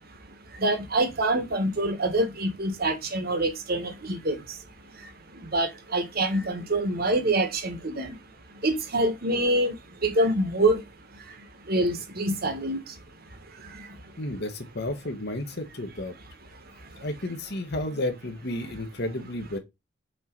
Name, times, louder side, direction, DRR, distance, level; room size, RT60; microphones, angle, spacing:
voice 1, 0.6-4.4 5.5-8.1 8.6-9.7 10.0-10.8 11.7-12.8, right 1 dB, 50° right, 1.4 m, -25 dB
voice 2, 14.2-16.1 17.0-19.6, left 1 dB, 60° left, 1.4 m, -32 dB
6.4 x 3.2 x 4.5 m
head